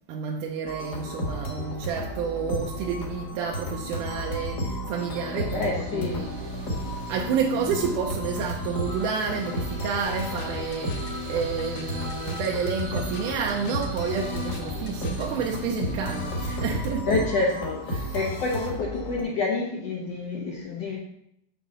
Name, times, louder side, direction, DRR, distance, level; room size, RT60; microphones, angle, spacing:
voice 1, 0.1-6.4 7.1-17.3 17.9-18.2, right 6 dB, 75° right, 0 dB, 2.1 m, -30 dB
sound 1, 0.7-19.2, equal, 45° left, 1.4 m, -33 dB
sound 2, 5.0-16.9, equal, 45° right, 1.3 m, -44 dB
voice 2, 5.5-6.2 17.1-21.0, left 3 dB, 70° left, -2 dB, 1.6 m, -28 dB
sound 3, 10.0-15.3, left 2 dB, 85° left, 2.4 m, -41 dB
8.1 x 3.8 x 6.5 m, 0.76 s
omnidirectional pair, 4.0 m